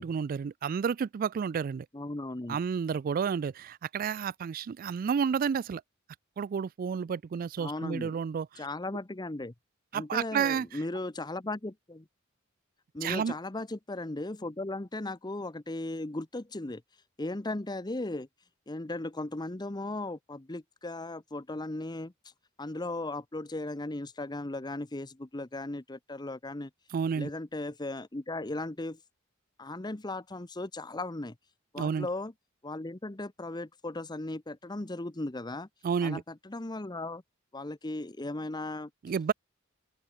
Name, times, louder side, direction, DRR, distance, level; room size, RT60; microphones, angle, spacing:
voice 1, 0.0-1.9 2.5-5.8 6.4-8.6 9.9-10.8 13.0-13.4 26.9-27.3 31.8-32.1 35.8-36.2 39.0-39.3, right 6 dB, 45° right, 0.3 m, -31 dB
voice 2, 1.9-2.6 7.6-8.1 8.6-9.5 9.9-12.0 12.9-16.8 17.2-18.3 18.7-22.3 22.6-26.7 27.2-29.0 29.6-31.3 31.7-32.3 32.6-35.7 36.0-36.2 36.4-37.2 37.5-38.9, left 2 dB, 20° left, 0.8 m, -37 dB
open air
head